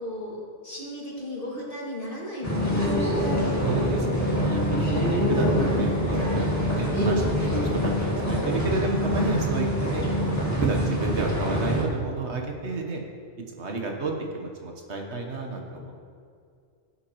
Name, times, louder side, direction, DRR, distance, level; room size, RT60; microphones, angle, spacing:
voice 1, 0.0-3.6, left 1 dB, 50° left, -5 dB, 2.5 m, -35 dB
sound 1, 2.4-11.8, equal, 15° left, 1.9 m, -25 dB
voice 2, 3.6-4.6 4.9-13.0 13.6-16.0, right 3 dB, 70° right, 2 dB, 1.5 m, -31 dB
16.0 x 8.5 x 3.1 m, 2.3 s
omnidirectional pair, 1.2 m